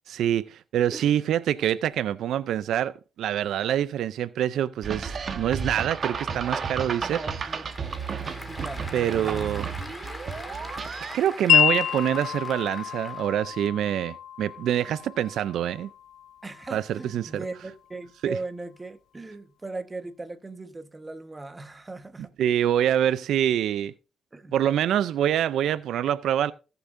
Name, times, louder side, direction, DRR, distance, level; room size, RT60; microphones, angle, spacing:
voice 1, 0.1-7.2 8.9-9.7 11.1-15.9 16.7-17.3 18.2-18.3 22.4-23.9 24.5-26.5, right 10 dB, 75° right, 0.4 m, -25 dB
sound 1, 4.8-11.2, right 5 dB, 45° right, 1.2 m, -33 dB
voice 2, 7.0-8.0 8.5-9.9 16.4-22.3 24.3-24.6, right 2 dB, 20° right, 1.2 m, -39 dB
Applause / Crowd, 7.2-13.4, left 1 dB, 15° left, 2.0 m, -42 dB
Wind chime, 11.5-17.6, left 10 dB, 80° left, 0.6 m, -28 dB
18.5 x 6.8 x 2.6 m
cardioid pair, 90°, 0 cm